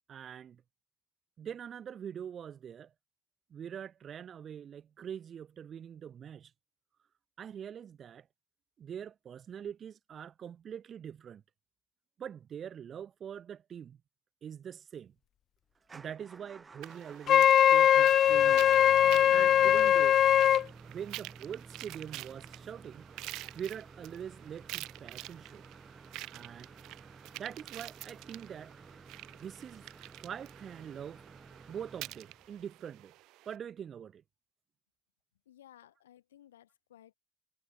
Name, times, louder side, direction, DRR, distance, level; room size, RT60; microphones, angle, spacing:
voice 1, 0.1-0.6 1.4-2.9 3.5-6.5 7.4-8.3 8.8-11.4 12.2-14.0 14.4-15.1 15.9-18.7 19.3-20.2 20.9-23.1 23.5-25.7 26.3-26.7 27.3-28.8 29.4-29.8 30.2-31.3 31.7-33.1 33.5-34.2, right 8 dB, 45° right, 2.0 m, -44 dB
Motor vehicle (road) / Engine starting / Idling, 15.8-32.8, right 4 dB, 30° right, 7.4 m, -52 dB
sound 1, 16.8-33.6, right 19 dB, 65° right, 4.0 m, -48 dB
Wind instrument woodwind instrument, 17.3-20.6, left 10 dB, 55° left, 0.4 m, -21 dB
voice 2, 35.5-37.1, left 12 dB, 85° left, 5.7 m, -58 dB
hypercardioid pair, 55°, 0 cm